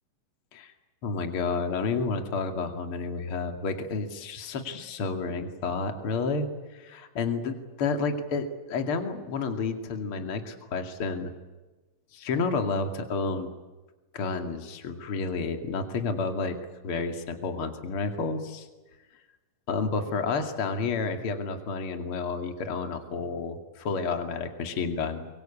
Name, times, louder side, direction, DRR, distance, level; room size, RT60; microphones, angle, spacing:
voice 1, 1.0-11.3 12.1-13.5 14.1-16.6 16.8-18.7 19.7-25.3, left 4 dB, 45° left, 6 dB, 3.0 m, -30 dB
25.5 x 23.0 x 8.7 m, 1.2 s
omnidirectional pair, 3.8 m